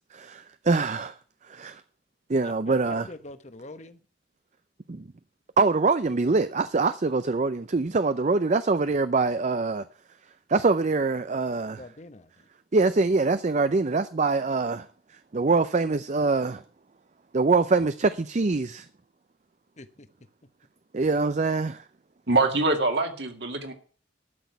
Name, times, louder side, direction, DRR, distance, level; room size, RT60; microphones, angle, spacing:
voice 1, 0.1-1.2 1.5-1.8 2.3-3.1 4.9-5.0 5.6-9.8 10.5-11.8 12.7-14.9 15.3-16.6 17.3-18.8 20.9-21.8, right 3 dB, 40° right, 0.5 m, -24 dB
voice 2, 2.4-4.0 11.8-12.3 19.8-20.1, left 2 dB, 40° left, 1.1 m, -44 dB
voice 3, 22.3-23.7, right 3 dB, 65° right, 2.3 m, -24 dB
12.0 x 6.4 x 9.3 m
head